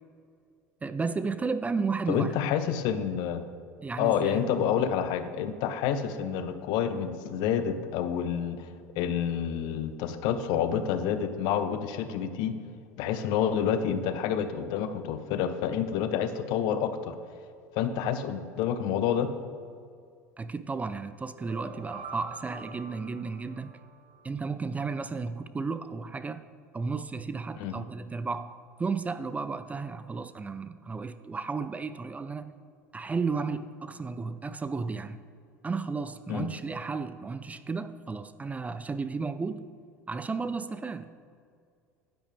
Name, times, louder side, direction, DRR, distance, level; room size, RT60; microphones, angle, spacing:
voice 1, 0.8-2.3 3.8-4.5 20.4-23.7 24.2-26.4 26.7-28.5 28.8-32.5 32.9-35.2 35.6-39.7 40.1-41.1, right 4 dB, 15° right, 12 dB, 0.4 m, -33 dB
voice 2, 2.1-3.4 4.0-8.7 9.0-12.5 13.0-17.1 17.7-19.3 27.6-27.8 36.3-36.5, left 8 dB, 60° left, 10 dB, 0.7 m, -28 dB
sound 1, 21.2-24.3, right 3 dB, 60° right, 1.7 m, -45 dB
9.9 x 9.0 x 3.5 m, 2.3 s
hypercardioid pair, 75°, 8 cm